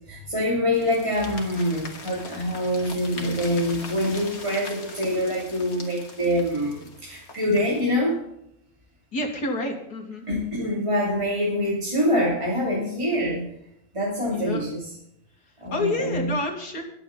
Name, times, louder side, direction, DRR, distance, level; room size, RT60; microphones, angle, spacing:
voice 1, 0.1-8.2 10.3-13.5 13.9-14.9 15.6-16.3, equal, 20° right, -5 dB, 3.2 m, -25 dB
sound 1, 0.7-7.9, left 3 dB, 70° left, 2.7 m, -41 dB
voice 2, 9.1-10.2 14.3-14.6 15.7-16.8, left 2 dB, 90° left, 2 dB, 2.9 m, -28 dB
21.5 x 8.4 x 4.1 m, 0.77 s
omnidirectional pair, 1.6 m